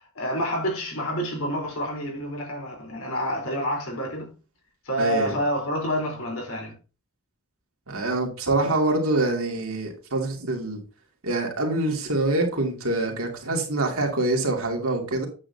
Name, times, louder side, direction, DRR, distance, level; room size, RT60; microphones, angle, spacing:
voice 1, 0.0-4.3 4.8-6.7, equal, 65° left, 4.1 m, -28 dB
voice 2, 5.0-5.4 7.9-10.8 11.2-15.3, right 2 dB, 65° right, 2.6 m, -25 dB
8.8 x 8.7 x 2.9 m
head